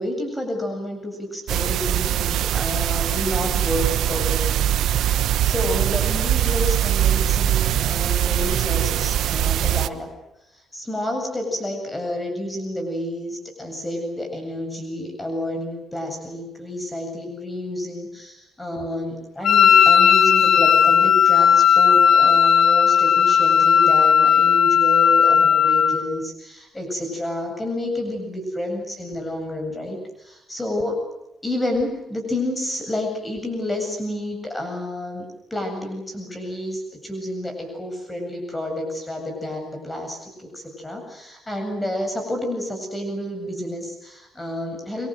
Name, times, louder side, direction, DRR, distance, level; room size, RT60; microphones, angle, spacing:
voice 1, 0.0-4.6 5.0-10.1 10.5-31.0 31.4-45.1, left 1 dB, 15° left, 4 dB, 7.9 m, -29 dB
sound 1, 1.5-9.9, right 11 dB, 80° right, 1.2 m, -22 dB
Wind instrument woodwind instrument, 19.4-26.0, left 7 dB, 60° left, 1.7 m, -15 dB
28.5 x 23.5 x 7.9 m, 0.90 s
cardioid pair, 90°, 0 cm